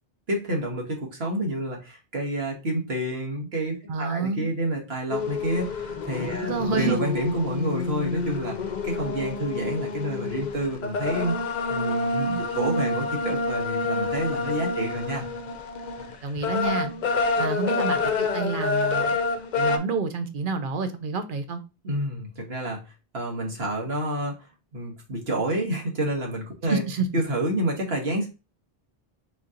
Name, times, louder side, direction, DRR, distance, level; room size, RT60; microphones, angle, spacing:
voice 1, 0.3-8.6 8.8-11.4 11.7-15.2 21.8-22.8 23.1-24.3 24.7-26.8 27.1-28.3, right 1 dB, 80° right, 0 dB, 1.6 m, -29 dB
voice 2, 3.9-4.5 6.4-7.0 16.2-16.9 17.4-19.2 19.6-21.6 26.7-27.1, right 4 dB, 60° right, 8 dB, 0.8 m, -28 dB
sound 1, 5.1-19.8, left 3 dB, 55° left, 0.6 m, -28 dB
4.4 x 2.8 x 3.7 m, 0.29 s
omnidirectional pair, 1.0 m